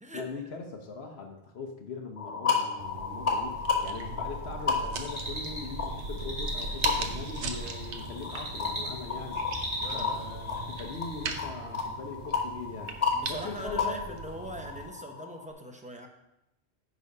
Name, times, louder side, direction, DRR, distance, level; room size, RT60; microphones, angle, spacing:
voice 1, 0.1-9.5 9.9-12.9 13.3-14.2, left 4 dB, 70° left, 3 dB, 1.2 m, -41 dB
sound 1, 2.2-15.5, left 5 dB, 35° left, 1.3 m, -33 dB
sound 2, 2.8-14.9, right 4 dB, 85° right, 1.1 m, -39 dB
sound 3, 5.1-11.4, equal, 35° right, 2.4 m, -40 dB
voice 2, 9.8-10.3 13.1-16.1, right 1 dB, 5° right, 3 dB, 0.8 m, -41 dB
10.0 x 4.0 x 5.3 m, 0.88 s
omnidirectional pair, 1.1 m